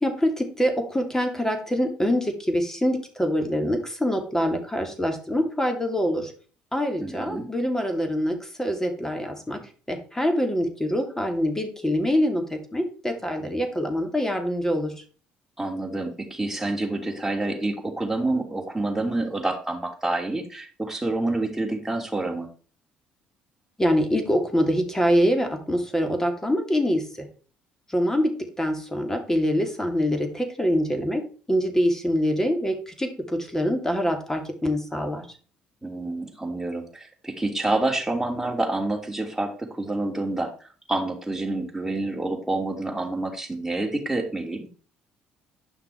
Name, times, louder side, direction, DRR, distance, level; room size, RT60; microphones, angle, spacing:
voice 1, 0.0-6.3 6.7-9.6 9.9-14.9 23.8-27.3 27.9-31.2 31.5-35.3, equal, 10° left, 5 dB, 2.8 m, -25 dB
voice 2, 7.0-7.5 15.6-22.5 35.8-39.5 39.8-44.7, right 2 dB, 10° right, 1 dB, 3.0 m, -28 dB
10.0 x 5.8 x 4.7 m, 0.40 s
supercardioid pair, 65°, 4 cm